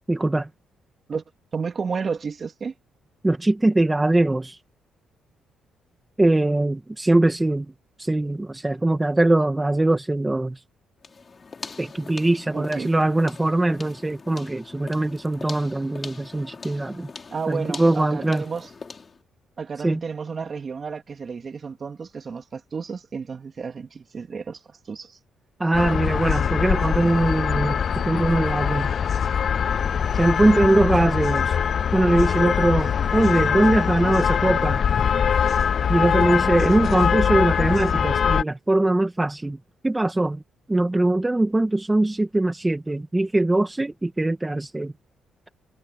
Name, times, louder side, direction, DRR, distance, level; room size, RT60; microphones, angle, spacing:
voice 1, 0.1-0.5 3.2-4.6 6.2-7.7 8.0-10.6 11.8-17.1 17.5-18.4 19.8-20.0 25.6-28.9 30.1-31.5 31.9-34.8 35.9-39.6 39.8-40.4 40.7-44.9, right 2 dB, 15° right, 2.0 m, -21 dB
voice 2, 1.5-2.7 12.5-12.9 17.3-18.7 19.6-25.2, right 5 dB, 40° right, 3.2 m, -32 dB
sound 1, 11.0-19.2, left 4 dB, 35° left, 6.1 m, -41 dB
sound 2, 25.7-38.4, left 7 dB, 50° left, 0.4 m, -22 dB
cardioid pair, 90°, 0 cm